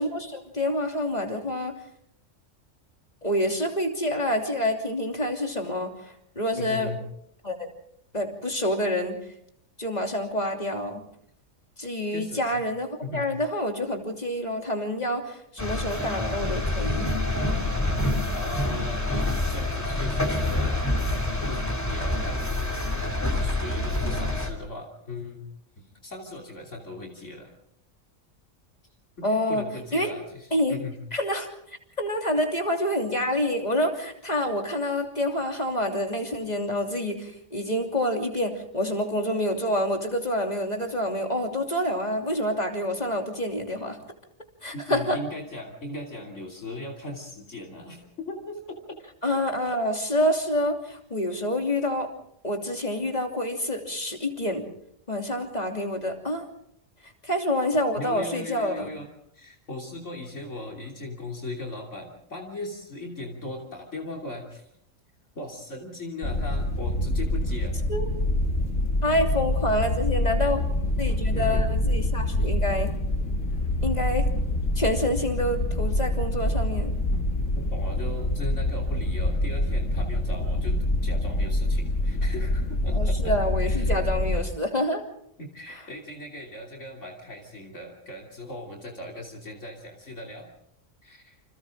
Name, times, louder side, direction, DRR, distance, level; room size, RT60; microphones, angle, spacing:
voice 1, 0.0-1.7 3.2-6.9 7.4-7.7 8.1-9.2 9.8-11.0 11.8-17.2 29.2-29.6 29.9-30.1 30.5-30.8 31.1-31.5 32.0-44.0 44.6-45.2 49.2-52.1 52.4-54.7 55.1-56.4 57.2-58.9 67.9-68.1 69.0-70.6 71.0-72.9 73.8-74.3 74.7-76.9 82.9-85.0 85.7-85.8, left 1 dB, 30° left, 2 dB, 3.1 m, -27 dB
voice 2, 6.6-7.0 12.1-12.6 13.0-13.3 18.3-22.8 23.3-25.4 25.8-27.5 29.2-31.0 44.7-49.0 49.6-49.8 58.0-64.7 65.4-67.8 71.3-71.7 72.4-72.5 77.6-83.4 83.7-84.1 85.4-90.5 91.0-91.4, left 2 dB, 65° left, 0 dB, 3.4 m, -38 dB
sound 1, 15.6-24.5, left 1 dB, 10° left, 2.6 m, -27 dB
sound 2, 66.2-84.4, left 1 dB, 85° left, 2.8 m, -26 dB
29.0 x 26.5 x 3.8 m, 0.72 s
omnidirectional pair, 1.3 m